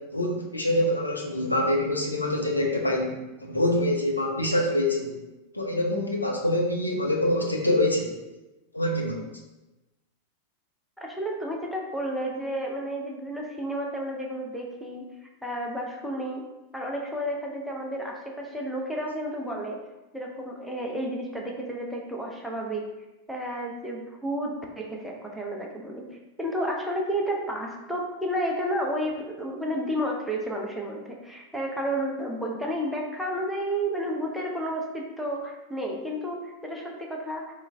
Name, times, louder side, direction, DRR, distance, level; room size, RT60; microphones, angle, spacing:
voice 1, 0.0-5.1 5.5-8.2 8.7-9.2, left 1 dB, 85° left, -1 dB, 0.5 m, -25 dB
voice 2, 11.0-16.4 16.7-19.8 20.1-22.9 23.3-26.0 26.4-37.5, equal, ahead, -2 dB, 0.5 m, -31 dB
3.1 x 2.3 x 3.3 m, 1.0 s
figure-of-eight pair, 90°, 0 cm